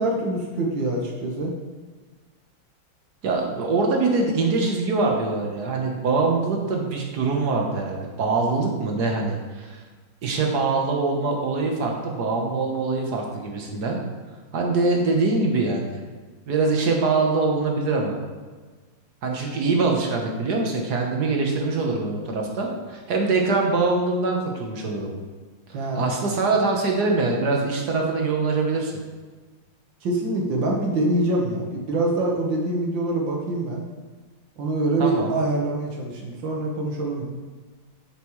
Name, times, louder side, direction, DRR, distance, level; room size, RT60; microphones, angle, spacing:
voice 1, 0.0-1.5 25.7-26.0 30.0-33.8 34.6-37.2, right 2 dB, 75° right, -1 dB, 2.0 m, -25 dB
voice 2, 3.2-9.8 10.2-14.0 14.5-15.9 16.5-18.1 19.2-25.1 25.9-28.9 35.0-35.3, right 3 dB, 60° right, 0 dB, 1.6 m, -23 dB
8.9 x 6.6 x 3.1 m, 1.4 s
omnidirectional pair, 2.1 m